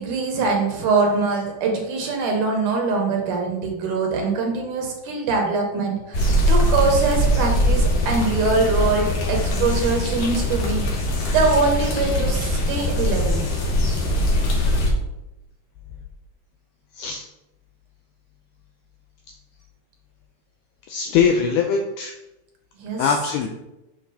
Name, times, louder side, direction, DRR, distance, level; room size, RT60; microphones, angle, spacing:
voice 1, 0.0-11.0 11.3-13.4 22.8-23.0, right 3 dB, 70° right, 1 dB, 2.2 m, -23 dB
sound 1, 6.1-14.9, equal, 65° left, 1.9 m, -21 dB
voice 2, 20.9-22.1 23.0-23.5, left 6 dB, 85° left, 3 dB, 1.8 m, -21 dB
6.5 x 5.9 x 2.7 m, 0.93 s
omnidirectional pair, 4.1 m